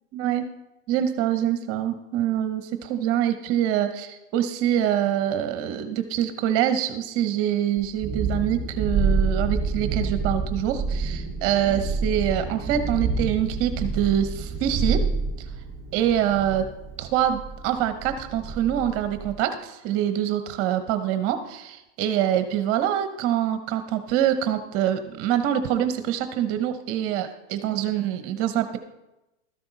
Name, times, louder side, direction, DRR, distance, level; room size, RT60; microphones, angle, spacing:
voice 1, 0.1-0.5 0.9-15.0 15.4-15.5 15.9-16.7 17.0-28.8, right 10 dB, 40° right, 9 dB, 0.9 m, -25 dB
Thunderstorm, 7.8-19.3, right 4 dB, 20° right, 3.9 m, -28 dB
13.0 x 10.5 x 4.0 m, 0.95 s
supercardioid pair, 145°, 35 cm